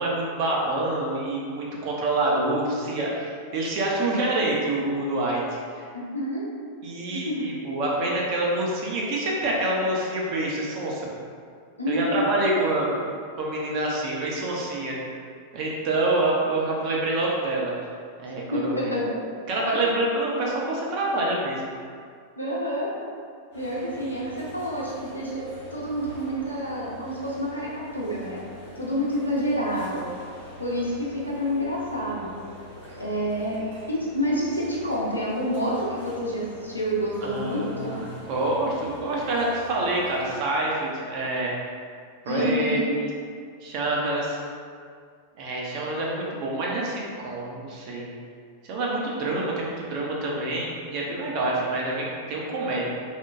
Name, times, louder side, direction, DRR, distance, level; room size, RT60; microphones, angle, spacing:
voice 1, 0.0-5.9 6.8-11.1 11.9-12.9 13.4-15.0 15.5-17.7 18.2-18.9 19.5-21.7 37.2-41.7 42.2-42.9 43.6-44.4 45.4-48.1 48.6-52.8, right 2 dB, 45° right, -3 dB, 0.5 m, -27 dB
voice 2, 5.9-6.5 7.1-7.5 11.8-12.4 18.3-19.2 19.7-19.9 22.4-22.9 23.5-25.4 25.7-28.4 28.7-30.1 30.6-32.3 33.0-38.0 42.3-43.0, equal, 85° left, -6 dB, 0.5 m, -28 dB
sound 1, 23.5-40.4, equal, 85° right, 1.5 m, -45 dB
2.9 x 2.1 x 2.4 m, 2.1 s
figure-of-eight pair, 90°, 0 cm